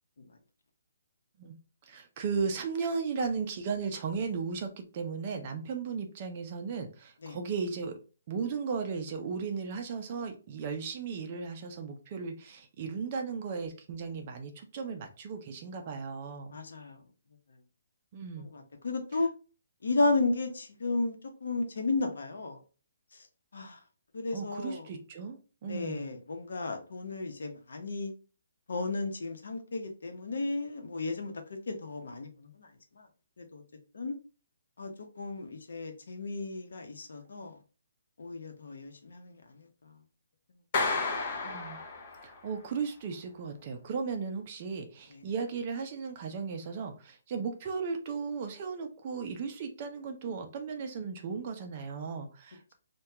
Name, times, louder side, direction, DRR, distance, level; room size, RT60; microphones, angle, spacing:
voice 1, 1.9-7.9 8.3-16.6 18.1-18.5 24.3-26.1 41.4-41.8 42.2-52.7, right 5 dB, 25° right, 0.4 m, -36 dB
voice 2, 16.5-17.0 18.4-19.3 19.8-22.6 23.1-23.3 23.5-23.8 24.1-24.9 25.6-28.1 28.7-31.3 31.7-33.1 33.4-33.6 33.9-34.2 34.8-37.6 38.2-40.0 40.5-40.6 40.9-41.0 45.1-45.2, left 3 dB, 75° left, 0.8 m, -34 dB
Clapping, 40.7-42.5, left 3 dB, 25° left, 0.6 m, -32 dB
2.8 x 2.2 x 3.4 m
hypercardioid pair, 175°, 0 cm